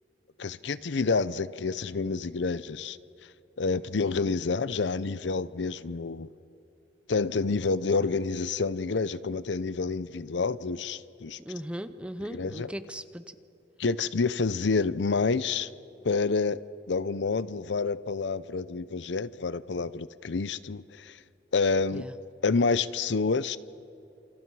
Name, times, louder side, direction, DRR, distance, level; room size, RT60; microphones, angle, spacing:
voice 1, 0.4-3.0 3.6-6.3 7.1-11.4 12.3-12.7 13.8-15.7 16.0-16.6 16.9-21.2 21.5-22.0 22.4-23.6, left 4 dB, 75° left, 16 dB, 0.6 m, -28 dB
voice 2, 11.4-13.4 21.9-22.1, equal, 5° right, 11 dB, 0.8 m, -38 dB
28.5 x 28.0 x 4.8 m, 2.8 s
head